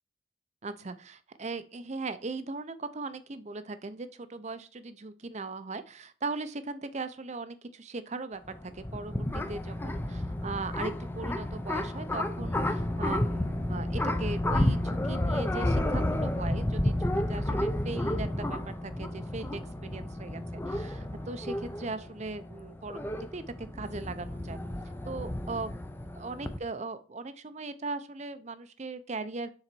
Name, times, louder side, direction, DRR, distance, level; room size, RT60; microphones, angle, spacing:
voice 1, 0.6-8.4 8.7-20.4 20.7-24.6 25.1-25.8 26.1-29.5, right 3 dB, 35° right, 12 dB, 0.6 m, -39 dB
sound 1, 8.4-26.6, left 1 dB, 10° left, 0.5 m, -31 dB
6.7 x 3.9 x 4.5 m, 0.38 s
head